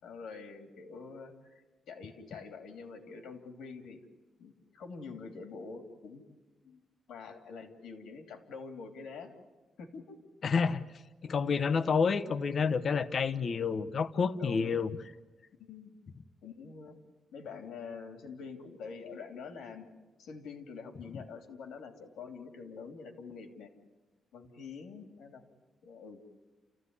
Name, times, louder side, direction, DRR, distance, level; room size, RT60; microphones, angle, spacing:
voice 1, 0.0-4.0 4.4-6.2 6.6-6.8 7.1-9.3 9.8-10.0 10.6-10.8 14.4-14.8 15.6-16.0 16.4-17.0 17.3-19.9 20.2-23.7 24.3-25.4 25.8-26.2, left 5 dB, 90° left, 6 dB, 3.0 m, -46 dB
voice 2, 10.4-10.9 11.2-14.9, left 5 dB, 40° left, 13 dB, 0.9 m, -29 dB
30.0 x 15.0 x 9.7 m, 1.2 s
wide cardioid pair, 165°, 0 cm